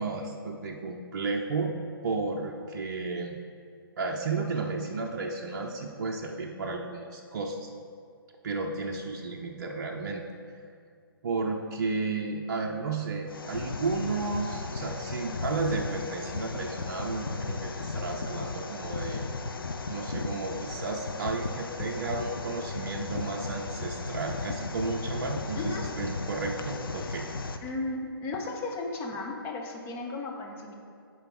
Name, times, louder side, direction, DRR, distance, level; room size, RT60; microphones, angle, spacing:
voice 1, 0.0-1.7 2.0-3.4 4.0-7.7 8.4-10.2 11.2-19.3 19.9-27.3, right 3 dB, 50° right, 0 dB, 0.6 m, -33 dB
sound 1, 13.3-27.6, left 3 dB, 65° left, 0.6 m, -35 dB
voice 2, 27.6-30.7, left 2 dB, 15° left, 1 dB, 0.7 m, -35 dB
6.6 x 4.6 x 6.1 m, 2.2 s
figure-of-eight pair, 130°, 13 cm